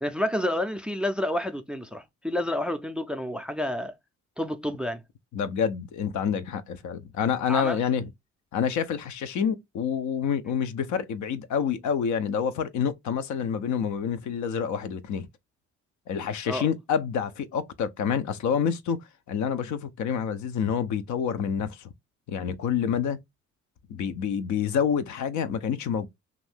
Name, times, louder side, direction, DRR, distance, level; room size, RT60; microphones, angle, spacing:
voice 1, 0.0-3.9 4.4-5.0 7.5-7.8 16.5-16.7, left 1 dB, 5° right, 0.4 m, -29 dB
voice 2, 5.3-8.1 8.5-15.3 16.1-21.9 22.3-23.2 23.9-26.1, left 7 dB, 70° left, 0.5 m, -28 dB
2.6 x 2.5 x 3.3 m
cardioid pair, 90°, 30 cm